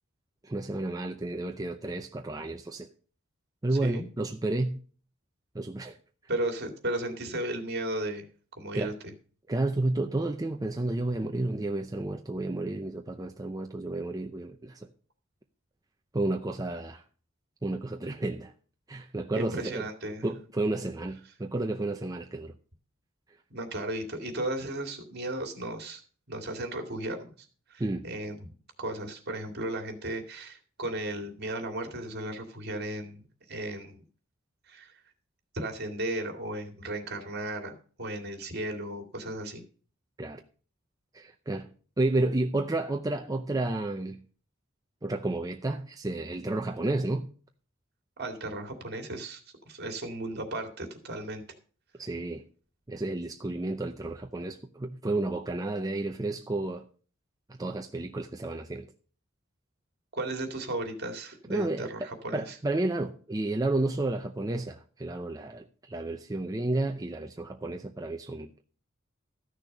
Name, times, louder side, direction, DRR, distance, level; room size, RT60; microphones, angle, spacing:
voice 1, 0.4-2.9 3.6-4.8 5.5-6.0 8.7-8.9 9.5-14.9 16.1-17.0 17.6-18.5 18.9-19.9 20.2-22.5 27.8-28.1 40.2-40.4 41.1-41.7 42.0-44.2 45.0-47.3 52.0-52.4 52.9-56.9 57.5-58.9 61.5-68.6, right 2 dB, 20° right, 0.6 m, -31 dB
voice 2, 3.7-4.0 6.3-8.3 8.6-8.9 19.3-20.2 23.5-26.0 26.3-28.5 28.8-33.2 33.5-34.0 34.7-34.9 35.5-39.6 48.2-49.4 49.7-51.4 60.1-62.6, right 1 dB, 55° right, 2.4 m, -35 dB
13.5 x 6.6 x 5.3 m
head